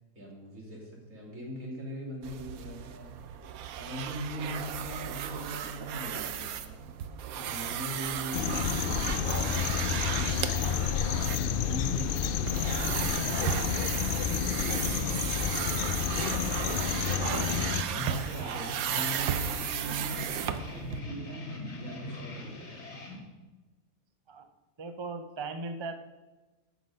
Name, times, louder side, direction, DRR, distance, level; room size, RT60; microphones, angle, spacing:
voice 1, 0.1-3.1 3.7-6.8 7.3-10.9 11.2-15.6 17.9-22.7, right 1 dB, 60° right, -3 dB, 2.9 m, -41 dB
sound 1, 2.2-21.0, right 9 dB, 80° right, 1.1 m, -35 dB
sound 2, 8.3-17.8, left 8 dB, 85° left, 0.4 m, -30 dB
sound 3, 16.3-23.2, left 2 dB, 50° left, 2.1 m, -42 dB
voice 2, 17.5-18.2 24.3-24.5 24.8-26.0, right 3 dB, 45° right, 7 dB, 0.3 m, -39 dB
13.0 x 6.0 x 5.3 m, 1.1 s
omnidirectional pair, 1.5 m